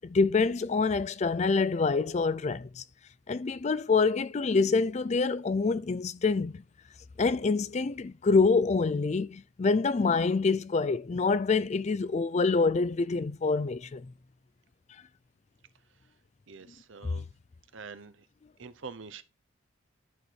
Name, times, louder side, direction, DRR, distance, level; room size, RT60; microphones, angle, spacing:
voice 1, 0.0-2.8 3.3-6.6 7.2-14.0, left 4 dB, 35° left, 0.4 m, -26 dB
voice 2, 16.5-17.3 17.7-18.2 18.6-19.2, right 5 dB, 70° right, 0.8 m, -45 dB
11.5 x 4.7 x 4.3 m
head